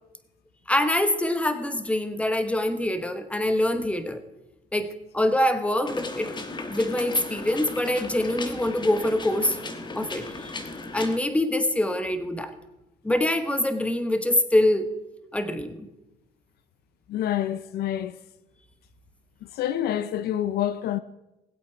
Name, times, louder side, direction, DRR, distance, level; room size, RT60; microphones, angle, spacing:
voice 1, 0.7-4.2 4.7-6.3 6.7-9.6 9.9-10.5 10.9-12.6 13.0-14.9 15.3-15.9, left 1 dB, 5° left, 1.1 m, -25 dB
sound 1, 5.9-11.2, left 3 dB, 25° left, 1.3 m, -36 dB
voice 2, 17.1-18.2 19.5-21.0, left 11 dB, 70° left, 0.6 m, -27 dB
19.0 x 8.4 x 4.5 m
cardioid pair, 110°, 17 cm